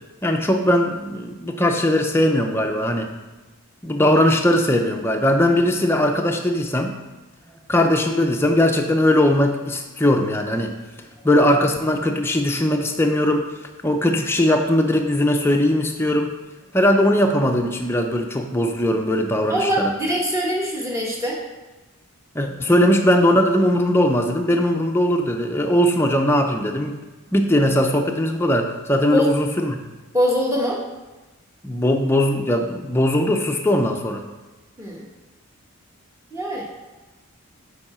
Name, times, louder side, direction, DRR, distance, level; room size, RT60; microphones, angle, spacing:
voice 1, 0.2-3.1 3.8-6.9 7.7-10.7 11.2-13.5 13.8-16.3 16.7-19.9 22.3-27.0 27.3-29.8 31.6-34.2, left 1 dB, 10° left, 3 dB, 0.5 m, -19 dB
voice 2, 19.5-21.4 22.4-22.5 29.1-29.3 30.1-30.8 34.8-35.0 36.3-36.6, equal, 15° right, -3 dB, 1.2 m, -23 dB
7.0 x 4.8 x 4.3 m, 1.2 s
head